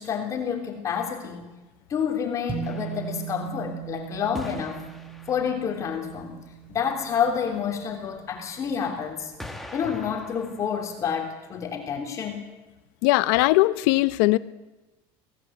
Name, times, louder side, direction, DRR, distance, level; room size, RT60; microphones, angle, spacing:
voice 1, 0.0-1.5 1.9-4.8 5.3-6.4 6.7-9.3 9.7-12.4, left 7 dB, 30° left, 2 dB, 3.3 m, -29 dB
sound 1, 2.5-9.1, right 10 dB, 20° right, 3.5 m, -39 dB
sound 2, 2.6-3.8 4.3-5.9 8.2-8.3 9.4-11.0, left 1 dB, ahead, 1.8 m, -43 dB
voice 2, 13.0-14.4, left 20 dB, 85° left, 16 dB, 0.9 m, -20 dB
25.5 x 17.5 x 8.1 m, 1.1 s
cardioid pair, 165°, 11 cm